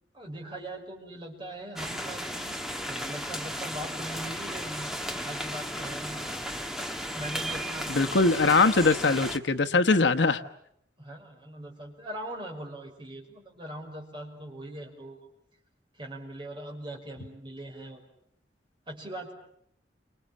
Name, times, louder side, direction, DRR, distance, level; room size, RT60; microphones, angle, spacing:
voice 1, 0.1-2.6 2.9-4.9 5.2-6.2 7.1-7.9 11.0-15.2 16.0-18.0 18.9-19.3, right 1 dB, 25° right, 1 dB, 5.8 m, -41 dB
sound 1, 1.8-9.4, equal, ahead, 1.6 m, -35 dB
voice 2, 7.9-10.4, left 3 dB, 80° left, 8 dB, 1.2 m, -22 dB
29.5 x 26.5 x 7.2 m, 0.72 s
head